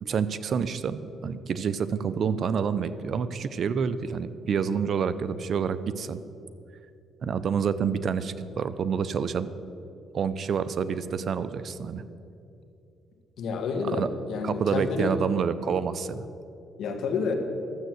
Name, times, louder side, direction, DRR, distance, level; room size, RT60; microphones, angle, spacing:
voice 1, 0.0-6.2 7.2-9.5 10.1-12.0 14.0-14.1 14.4-16.3, right 6 dB, 55° right, 14 dB, 0.6 m, -28 dB
voice 2, 13.4-15.1 16.8-17.3, left 4 dB, 70° left, 5 dB, 1.6 m, -29 dB
12.5 x 7.8 x 7.8 m, 2.7 s
cardioid pair, 90°, 0 cm